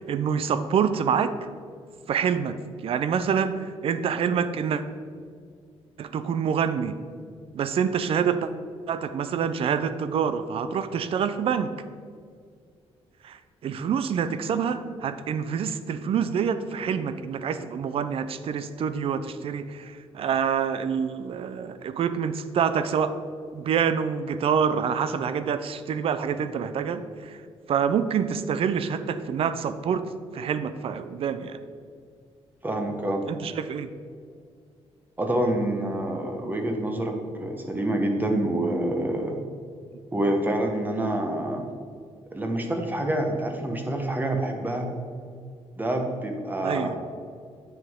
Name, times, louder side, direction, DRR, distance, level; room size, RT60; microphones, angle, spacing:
voice 1, 0.0-1.3 2.1-4.8 6.0-6.9 7.5-8.5 8.9-11.8 13.2-13.4 13.6-23.1 23.5-27.4 27.7-30.0 30.3-31.6 33.3-33.9 46.6-46.9, right 7 dB, 60° right, 11 dB, 0.5 m, -26 dB
voice 2, 32.6-33.2 35.2-39.4 40.1-41.7 42.3-44.9 45.8-46.9, right 1 dB, 15° right, 3 dB, 1.0 m, -27 dB
9.0 x 5.4 x 3.6 m, 2.2 s
cardioid pair, 120°, 11 cm